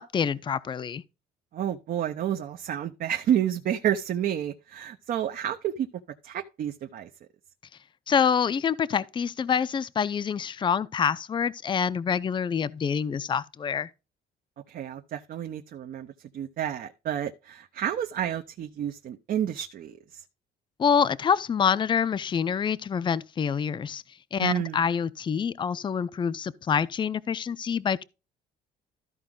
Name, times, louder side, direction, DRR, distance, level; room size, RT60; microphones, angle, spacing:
voice 1, 0.1-1.0 8.1-13.9 20.8-24.0 24.3-28.0, left 7 dB, 30° left, 0.5 m, -26 dB
voice 2, 1.5-5.9 6.2-7.1 14.7-20.2 24.4-24.8, right 10 dB, 55° right, 0.9 m, -30 dB
13.5 x 4.8 x 3.8 m
cardioid pair, 110°, 17 cm